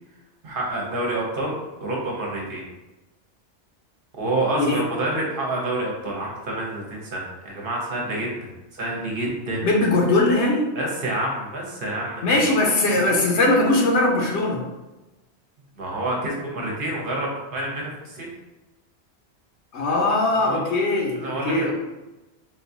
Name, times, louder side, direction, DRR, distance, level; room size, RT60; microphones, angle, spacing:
voice 1, 0.4-2.6 4.2-8.3 8.7-9.7 10.8-12.2 12.9-13.1 15.8-18.3 20.3-20.6 21.2-21.7, right 1 dB, 55° right, -2 dB, 0.8 m, -28 dB
voice 2, 9.6-10.7 12.2-14.6 19.7-21.7, left 2 dB, 80° left, -1 dB, 1.0 m, -20 dB
3.9 x 2.3 x 2.6 m, 1.0 s
omnidirectional pair, 1.2 m